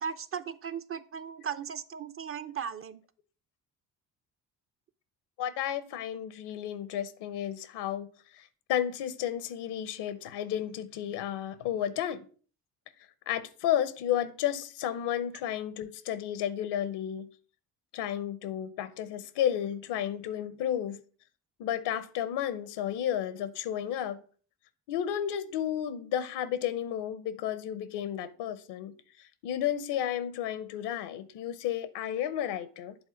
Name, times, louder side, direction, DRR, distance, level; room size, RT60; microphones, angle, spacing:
voice 1, 0.0-3.0, right 7 dB, 35° right, 0.5 m, -37 dB
voice 2, 5.4-8.1 8.3-12.2 13.3-17.3 17.9-21.0 21.6-24.2 24.9-28.9 29.4-33.0, left 10 dB, 80° left, 0.8 m, -32 dB
8.1 x 3.7 x 5.0 m
supercardioid pair, 75°, 40 cm